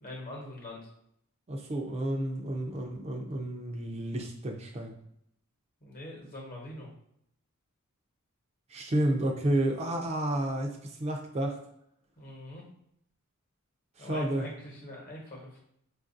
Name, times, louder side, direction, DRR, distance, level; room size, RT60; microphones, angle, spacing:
voice 1, 0.0-0.9 5.8-6.9 12.2-12.6 14.0-15.6, left 1 dB, 40° left, -2 dB, 1.0 m, -43 dB
voice 2, 1.5-4.9 8.7-11.6 14.0-14.5, right 1 dB, 30° right, 2 dB, 0.4 m, -31 dB
4.5 x 2.4 x 2.5 m, 0.74 s
head